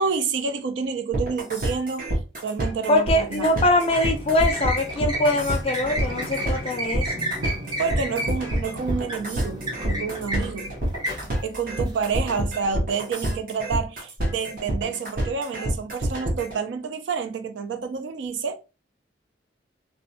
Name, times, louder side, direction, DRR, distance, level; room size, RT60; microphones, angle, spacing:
voice 1, 0.0-2.1 2.4-3.6 7.8-10.8 11.4-18.6, right 5 dB, 75° right, 0.4 m, -29 dB
sound 1, 1.1-16.6, right 1 dB, 50° right, 0.8 m, -27 dB
voice 2, 2.9-7.1, left 1 dB, 30° left, 0.4 m, -22 dB
sound 2, 3.2-12.5, equal, 20° right, 0.5 m, -32 dB
2.5 x 2.1 x 2.6 m
head